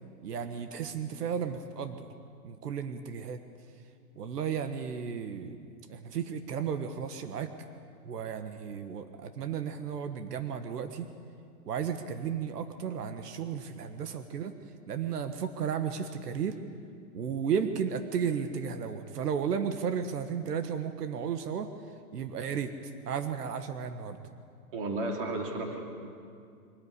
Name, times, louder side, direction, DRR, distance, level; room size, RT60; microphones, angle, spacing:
voice 1, 0.2-2.1 2.4-3.4 4.2-5.6 5.9-7.5 8.0-11.1 11.7-14.6 14.9-16.6 17.1-21.7 22.1-22.7 23.1-24.2, right 7 dB, 85° right, 8 dB, 1.5 m, -34 dB
voice 2, 24.7-25.8, right 2 dB, 35° right, 1 dB, 3.0 m, -33 dB
23.5 x 14.0 x 9.7 m, 2.4 s
hypercardioid pair, 180°, 46 cm